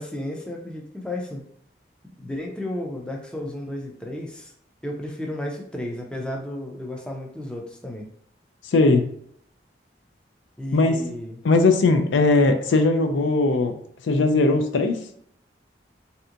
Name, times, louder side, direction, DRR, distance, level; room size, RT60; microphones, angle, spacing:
voice 1, 0.0-1.4 2.2-4.5 4.8-8.1 10.6-11.4, left 1 dB, 5° left, -1 dB, 0.4 m, -33 dB
voice 2, 8.7-9.1 10.7-11.0 11.4-13.7 14.0-15.0, left 3 dB, 85° left, 6 dB, 0.4 m, -19 dB
3.3 x 2.8 x 2.5 m, 0.65 s
head